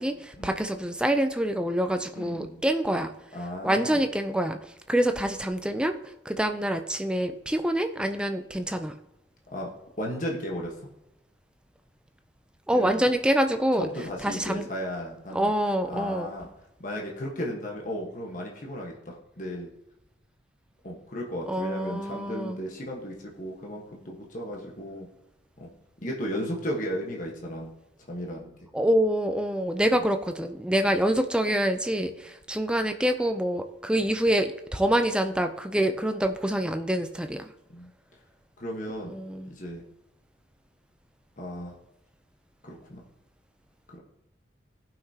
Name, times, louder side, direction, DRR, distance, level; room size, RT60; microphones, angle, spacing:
voice 1, 0.0-3.1 3.6-4.6 4.9-6.0 6.3-8.9 12.7-13.9 14.2-14.7 15.3-16.3 21.5-22.6 28.7-37.5 39.1-39.5, right 1 dB, 5° right, 7 dB, 0.5 m, -26 dB
voice 2, 2.1-2.6 3.3-4.0 9.5-9.7 10.0-10.9 12.7-13.1 13.8-15.5 15.9-16.5 16.8-19.7 20.8-25.1 25.6-25.7 26.0-27.7 28.1-28.5 30.9-31.0 37.7-37.9 38.6-39.1 39.5-39.8 41.4-41.8 42.6-43.0 43.9-44.0, equal, 40° left, -1 dB, 1.3 m, -35 dB
17.0 x 5.9 x 2.8 m, 0.92 s
head